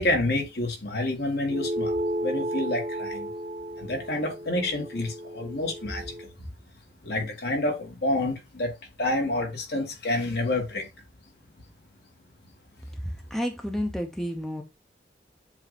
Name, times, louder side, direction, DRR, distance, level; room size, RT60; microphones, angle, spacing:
voice 1, 0.0-1.9 2.2-3.3 3.8-6.3 7.0-8.7 9.0-10.9, left 2 dB, 65° left, 1.9 m, -28 dB
sound 1, 1.5-6.3, equal, 35° right, 0.9 m, -33 dB
voice 2, 13.3-14.6, equal, ahead, 0.6 m, -30 dB
7.4 x 2.6 x 5.1 m
head